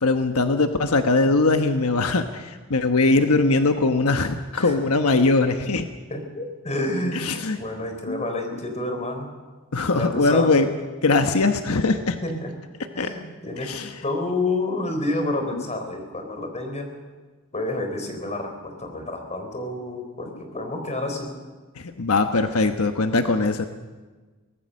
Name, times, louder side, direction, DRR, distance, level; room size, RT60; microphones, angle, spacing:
voice 1, 0.0-5.9 7.1-7.6 8.1-8.2 9.7-10.7 11.0-12.2 13.0-13.1 13.6-13.9 21.8-23.6, left 3 dB, 90° left, 7 dB, 1.2 m, -21 dB
voice 2, 6.1-7.3 7.5-9.3 9.9-10.6 12.2-12.5 12.9-13.7 14.0-16.9 17.5-21.3, left 2 dB, 30° left, 5 dB, 3.9 m, -29 dB
23.5 x 19.0 x 6.5 m, 1.3 s
head